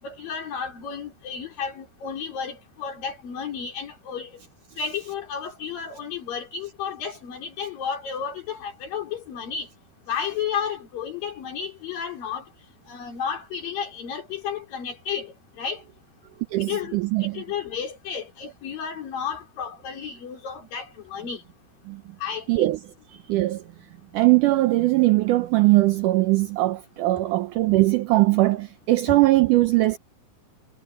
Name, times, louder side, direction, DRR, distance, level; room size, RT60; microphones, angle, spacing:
voice 1, 0.0-4.4 4.8-9.7 10.1-12.5 12.9-15.8 16.6-21.4 22.2-22.7, left 7 dB, 65° left, 5.7 m, -32 dB
voice 2, 16.5-17.4 21.9-22.0 22.5-22.8 23.3-23.6 24.1-30.0, right 18 dB, 90° right, 1.8 m, -20 dB
omnidirectional pair, 4.4 m